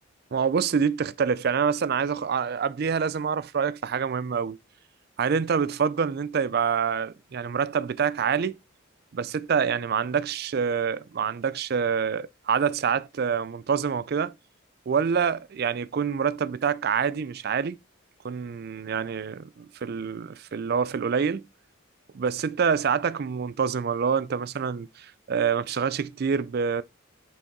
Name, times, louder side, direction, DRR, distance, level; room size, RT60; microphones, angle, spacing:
voice 1, 0.3-4.6 5.2-8.6 9.1-14.3 14.9-17.8 18.2-21.5 22.1-26.8, right 6 dB, 50° right, 0.4 m, -26 dB
5.6 x 5.2 x 3.6 m
head